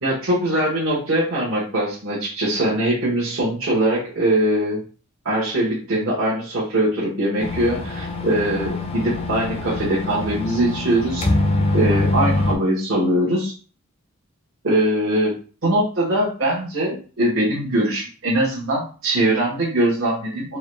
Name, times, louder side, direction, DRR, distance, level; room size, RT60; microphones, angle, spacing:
voice 1, 0.0-4.8 5.2-11.3 11.7-13.5 14.6-15.3 15.6-20.6, right 1 dB, 65° right, -6 dB, 1.2 m, -21 dB
sound 1, 7.4-12.5, left 2 dB, 30° left, 0.5 m, -24 dB
4.6 x 2.3 x 3.2 m, 0.38 s
head